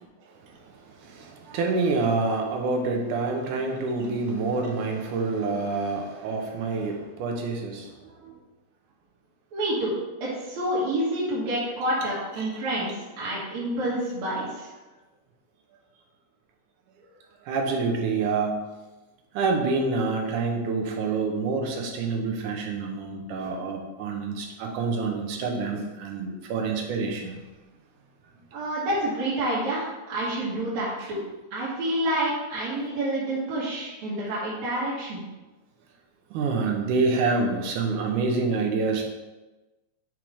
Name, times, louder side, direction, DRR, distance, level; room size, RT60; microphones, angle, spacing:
voice 1, 1.0-7.9 8.2-8.3 12.4-12.7 13.8-13.9 17.5-18.5 19.3-27.4 31.0-31.1 36.3-39.0, right 4 dB, 85° right, 2 dB, 2.5 m, -27 dB
voice 2, 9.5-9.9 10.2-14.7 28.5-31.2 31.5-35.2, right 1 dB, 70° right, -7 dB, 2.5 m, -28 dB
5.7 x 4.7 x 4.8 m, 1.1 s
omnidirectional pair, 3.5 m